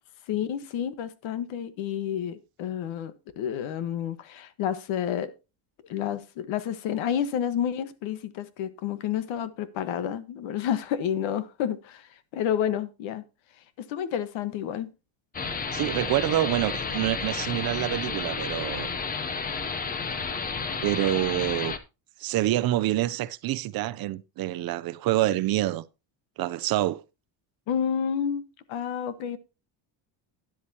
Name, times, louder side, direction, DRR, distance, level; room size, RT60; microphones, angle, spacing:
voice 1, 0.3-5.3 5.9-13.2 13.8-14.9 27.7-29.4, left 9 dB, 70° left, 1.4 m, -30 dB
sound 1, 15.3-21.8, left 5 dB, 20° left, 0.7 m, -31 dB
voice 2, 15.7-18.9 20.8-21.7 22.2-25.8 26.4-27.0, right 15 dB, 50° right, 0.6 m, -26 dB
12.5 x 10.5 x 2.8 m
cardioid pair, 175°, 48 cm